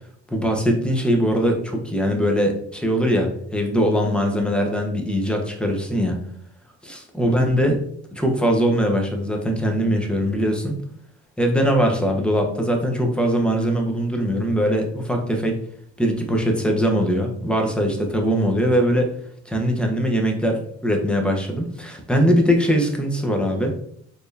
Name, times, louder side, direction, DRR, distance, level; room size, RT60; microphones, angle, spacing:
voice 1, 0.3-6.2 6.8-7.8 8.1-10.7 11.4-15.6 16.0-19.1 19.5-23.7, equal, 5° left, 2 dB, 0.9 m, -21 dB
4.3 x 3.3 x 2.7 m, 0.65 s
cardioid pair, 90°, 30 cm